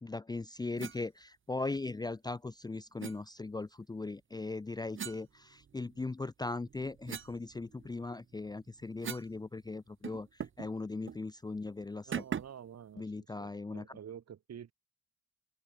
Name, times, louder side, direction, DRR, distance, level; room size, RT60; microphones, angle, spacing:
voice 1, 0.0-12.2 13.0-14.0, left 3 dB, 15° left, 0.6 m, -39 dB
sound 1, 0.8-1.0 3.0-3.2 4.9-6.0 6.5-9.4 9.6-9.7 10.0-10.7 11.1-11.2 12.1-12.7, right 7 dB, 40° right, 1.4 m, -42 dB
voice 2, 12.0-13.0 13.4-14.7, right 8 dB, 55° right, 6.6 m, -48 dB
cardioid pair, 90°, 30 cm